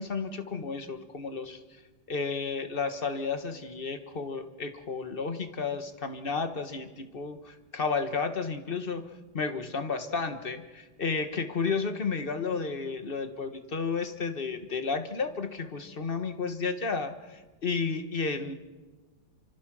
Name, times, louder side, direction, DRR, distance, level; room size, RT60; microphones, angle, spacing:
voice 1, 0.0-1.6 2.1-9.0 9.3-18.5, left 4 dB, 35° left, 8 dB, 1.4 m, -32 dB
27.5 x 25.0 x 6.2 m, 1.3 s
omnidirectional pair, 1.8 m